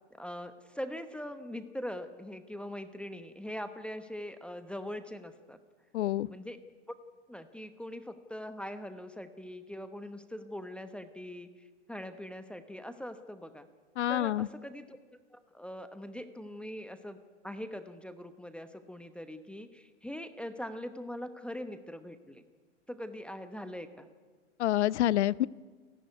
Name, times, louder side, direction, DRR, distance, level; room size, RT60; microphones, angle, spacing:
voice 1, 0.1-5.6 6.3-6.6 7.3-13.7 14.1-15.0 15.3-17.2 17.4-22.4 22.9-24.1, left 1 dB, 5° left, 9 dB, 1.0 m, -42 dB
voice 2, 5.9-6.3 14.0-14.5 24.6-25.5, left 13 dB, 65° left, 22 dB, 0.6 m, -27 dB
29.0 x 11.5 x 8.3 m, 1.5 s
hypercardioid pair, 100°, 36 cm